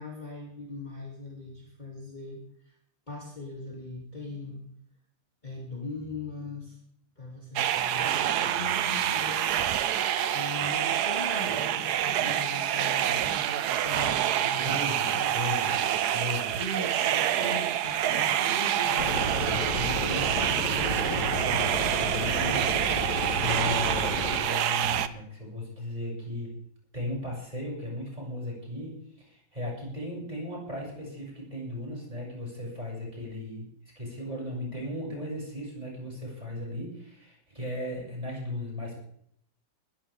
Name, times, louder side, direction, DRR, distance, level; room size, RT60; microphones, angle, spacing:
voice 1, 0.0-2.7 3.1-4.7 5.4-6.8 7.2-9.6 10.3-16.2 16.5-19.0 19.6-19.7, left 2 dB, 25° left, -3 dB, 2.6 m, -40 dB
sound 1, 7.6-25.1, right 11 dB, 70° right, 1.2 m, -27 dB
voice 2, 14.5-15.8 16.1-16.6 18.8-22.7 23.4-26.5 26.9-33.7 33.9-39.0, left 1 dB, 20° right, -3 dB, 6.7 m, -36 dB
sound 2, 19.0-24.4, left 1 dB, 80° left, 4.1 m, -32 dB
20.0 x 14.5 x 3.5 m, 0.67 s
omnidirectional pair, 1.9 m